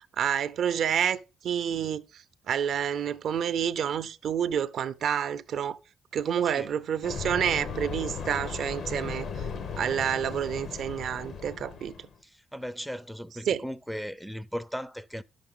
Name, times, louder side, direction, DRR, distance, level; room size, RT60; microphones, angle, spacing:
voice 1, 0.2-2.0 2.5-5.8 6.1-9.3 9.8-11.9 13.5-13.6, right 8 dB, 65° right, 0.6 m, -28 dB
sound 1, 7.0-12.1, left 5 dB, 65° left, 1.0 m, -37 dB
voice 2, 12.2-15.2, equal, ahead, 0.4 m, -37 dB
10.5 x 6.6 x 3.7 m
cardioid pair, 90°, 0 cm